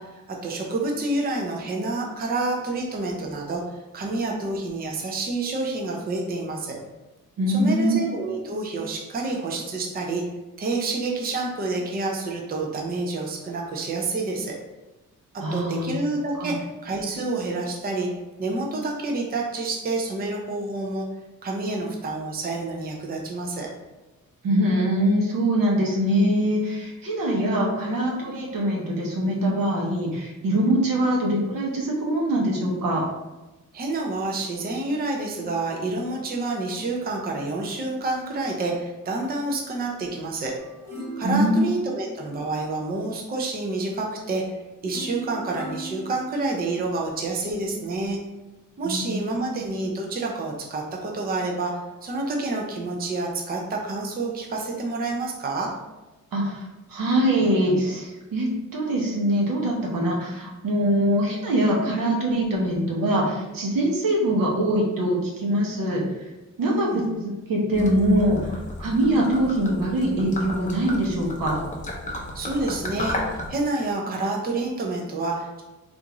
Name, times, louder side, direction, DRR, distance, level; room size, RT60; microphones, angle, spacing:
voice 1, 0.0-3.6 3.9-6.8 7.5-10.2 10.6-14.5 15.3-18.1 18.4-21.0 21.4-23.7 33.7-40.6 41.2-48.2 48.8-55.7 66.6-67.1 72.3-75.6, right 2 dB, 30° right, -1 dB, 0.4 m, -28 dB
voice 2, 7.4-8.0 15.4-15.9 16.3-16.5 24.4-33.0 41.2-41.6 48.8-49.2 49.4-49.6 56.3-66.0 66.6-71.6, right 1 dB, 85° right, -2 dB, 0.9 m, -23 dB
sound 1, 40.6-42.9 44.9-46.9 47.5-47.6, right 2 dB, 10° right, 1.2 m, -38 dB
Gurgling / Liquid, 67.7-73.5, left 1 dB, 25° left, 0.5 m, -33 dB
3.5 x 2.5 x 2.9 m, 1.1 s
wide cardioid pair, 140°, 33 cm